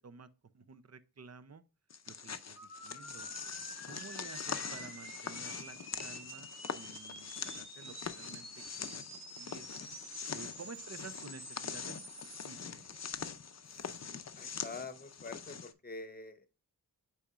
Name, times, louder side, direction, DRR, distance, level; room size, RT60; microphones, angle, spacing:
voice 1, 0.5-1.6 2.1-2.6 2.8-3.3 3.9-6.5 6.7-8.5 8.8-9.0 9.4-9.7 10.3-12.0 12.4-13.0, right 5 dB, 40° right, 0.6 m, -51 dB
sound 1, 1.9-15.7, left 6 dB, 40° left, 0.5 m, -43 dB
sound 2, 2.6-12.5, right 2 dB, 75° right, 2.5 m, -50 dB
voice 2, 14.3-16.5, left 3 dB, 25° left, 0.9 m, -46 dB
8.3 x 4.9 x 2.4 m
wide cardioid pair, 90°, 40 cm